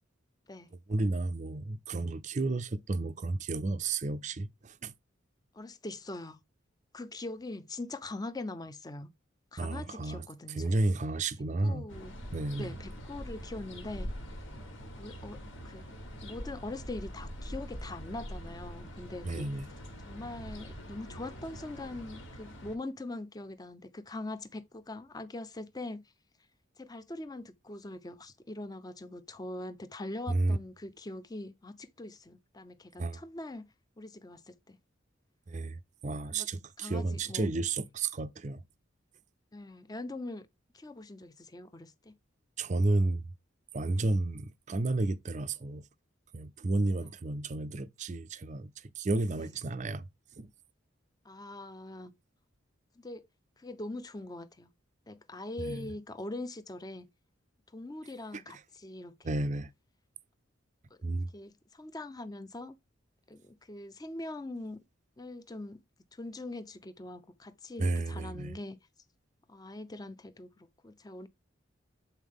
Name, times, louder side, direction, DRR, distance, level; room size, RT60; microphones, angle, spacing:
voice 1, 0.9-4.9 9.6-10.2 10.6-11.9 12.3-12.7 19.2-19.7 30.3-30.6 33.0-33.2 35.5-38.6 42.6-43.3 43.7-45.8 46.3-48.7 49.0-50.0 50.4-50.5 55.6-55.9 58.3-58.4 59.2-59.7 61.0-61.3 67.8-68.5, right 2 dB, 35° right, 0.5 m, -32 dB
voice 2, 5.5-6.4 6.9-9.1 9.5-10.8 11.6-12.1 12.6-14.1 15.0-15.8 16.2-19.5 20.0-26.1 26.8-34.8 36.3-36.5 36.8-37.5 39.5-40.5 40.7-42.2 47.0-47.1 49.4-49.6 51.2-52.1 53.0-53.2 53.6-54.7 55.1-57.1 57.7-59.4 60.9-61.0 61.3-62.8 63.3-64.8 65.2-65.8 66.1-68.8 69.5-71.3, left 2 dB, 20° left, 0.5 m, -42 dB
sound 1, 11.9-22.8, equal, 70° left, 1.7 m, -44 dB
8.1 x 4.2 x 3.6 m
head